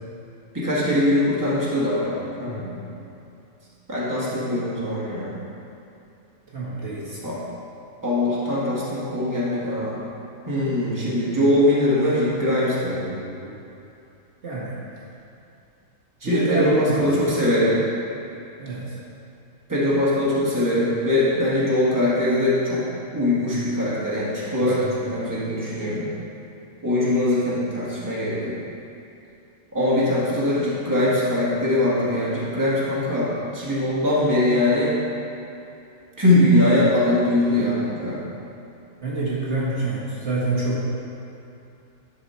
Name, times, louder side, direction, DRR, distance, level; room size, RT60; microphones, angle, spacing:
voice 1, 0.5-2.5 3.9-5.3 7.2-7.4 8.0-10.0 10.5-13.0 16.2-17.8 19.7-22.9 23.1-26.0 26.8-28.6 29.7-35.0 36.2-38.2, left 1 dB, 15° right, -8 dB, 1.8 m, -22 dB
voice 2, 2.5-2.9 6.5-7.3 12.8-13.6 14.4-14.8 16.2-17.3 18.6-18.8 25.0-25.1 39.0-40.8, right 2 dB, 55° right, -8 dB, 1.7 m, -27 dB
11.0 x 4.7 x 4.4 m, 2.8 s
omnidirectional pair, 1.4 m